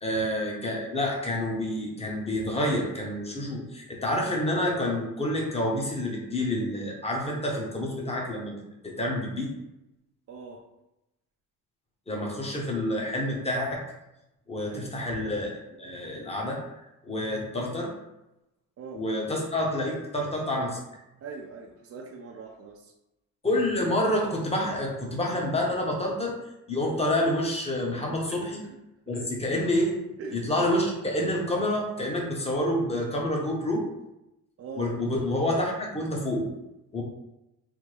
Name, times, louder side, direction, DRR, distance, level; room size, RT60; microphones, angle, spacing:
voice 1, 0.0-9.5 12.1-13.8 14.5-16.6 17.0-17.9 18.9-20.8 23.4-26.4 26.7-28.6 29.1-30.0 30.3-33.8 34.8-36.5 36.9-37.0, left 1 dB, 15° left, -1 dB, 0.9 m, -28 dB
voice 2, 10.3-10.6 14.7-14.9 18.8-19.0 21.2-22.9 28.3-28.8 29.1-29.3 30.2-30.4 34.6-34.9, right 4 dB, 40° right, 0 dB, 0.5 m, -42 dB
3.4 x 2.1 x 3.2 m, 0.91 s
supercardioid pair, 75°, 37 cm